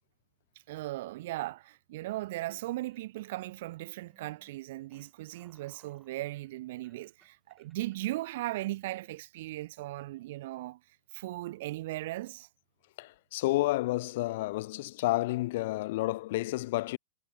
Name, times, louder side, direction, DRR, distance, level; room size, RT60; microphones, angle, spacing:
voice 1, 0.7-10.8 11.1-12.5, right 17 dB, 60° right, 1.0 m, -37 dB
sound 1, 2.8-9.2, right 4 dB, 10° right, 7.8 m, -69 dB
voice 2, 13.0-17.0, left 18 dB, 60° left, 0.8 m, -30 dB
hypercardioid pair, 125°, 0 cm